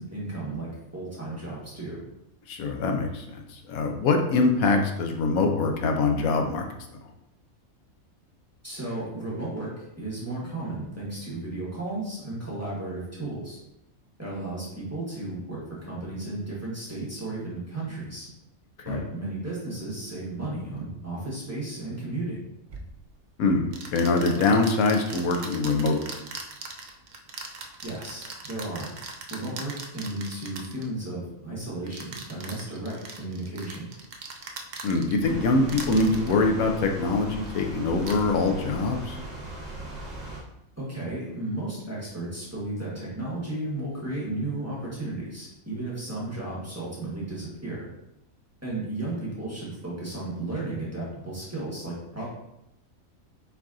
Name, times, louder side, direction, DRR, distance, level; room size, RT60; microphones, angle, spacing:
voice 1, 0.0-2.0 8.6-13.6 14.2-18.3 18.8-22.4 27.8-28.9 29.3-33.9 40.8-47.9 48.6-52.2, right 2 dB, 10° right, -7 dB, 1.3 m, -34 dB
voice 2, 2.5-6.7 18.9-19.0 23.4-26.2 34.8-39.2, left 3 dB, 80° left, 3 dB, 1.1 m, -24 dB
sound 1, 22.7-22.9 23.7-30.9 31.9-35.3 35.7-36.3 37.4-37.6 38.0-38.2, right 4 dB, 80° right, 0.4 m, -40 dB
sound 2, 35.2-40.4, right 1 dB, 30° right, 1.2 m, -39 dB
4.6 x 4.1 x 2.4 m, 0.84 s
omnidirectional pair, 1.5 m